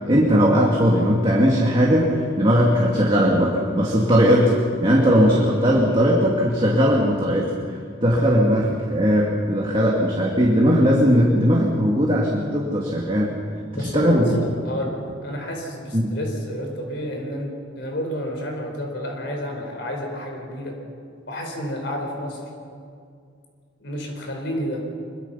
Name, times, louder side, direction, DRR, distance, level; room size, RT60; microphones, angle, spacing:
voice 1, 0.1-4.5 4.8-7.5 8.0-13.3 13.7-14.4 15.9-16.1, equal, 25° right, -2 dB, 2.2 m, -18 dB
voice 2, 13.7-20.8 21.3-22.4 23.8-24.8, equal, 60° left, 2 dB, 4.8 m, -30 dB
25.0 x 22.5 x 5.7 m, 2.3 s
head